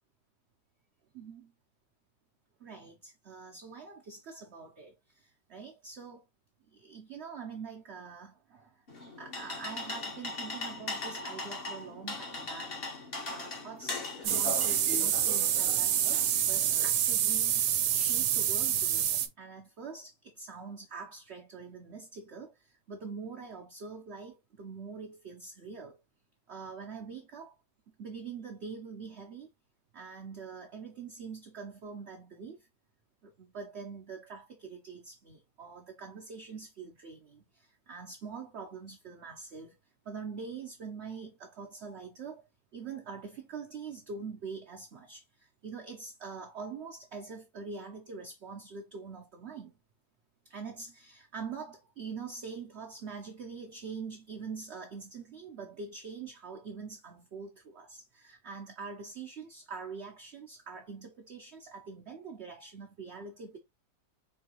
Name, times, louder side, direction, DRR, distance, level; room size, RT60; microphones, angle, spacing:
voice 1, 1.1-1.5 2.6-6.2 6.7-8.8 9.2-12.8 13.3-17.6 17.9-26.0 26.5-27.6 28.0-29.5 29.9-32.7 33.2-39.7 40.0-42.4 42.7-49.7 50.4-63.6, right 5 dB, 55° right, 0.8 m, -44 dB
sound 1, 8.9-16.9, left 3 dB, 40° left, 1.1 m, -39 dB
sound 2, 14.2-19.3, right 10 dB, 85° right, 1.2 m, -27 dB
4.5 x 2.8 x 2.9 m
omnidirectional pair, 1.7 m